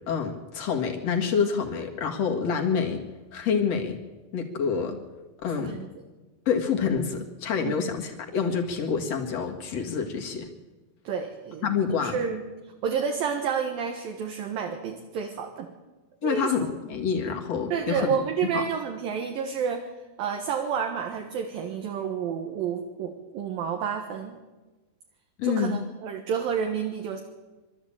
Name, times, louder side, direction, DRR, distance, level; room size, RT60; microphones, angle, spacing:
voice 1, 0.1-3.0 3.3-4.0 4.3-5.0 5.4-5.7 6.5-10.5 11.6-12.2 16.2-18.2 18.5-18.6 25.4-25.8, left 6 dB, 50° left, 2 dB, 2.3 m, -27 dB
voice 2, 5.5-5.9 7.6-7.9 11.0-11.7 12.0-12.5 12.8-15.7 16.2-16.5 17.7-19.9 20.2-24.4 25.4-27.2, right 7 dB, 65° right, 3 dB, 2.8 m, -30 dB
23.5 x 13.0 x 8.8 m, 1.2 s
omnidirectional pair, 4.9 m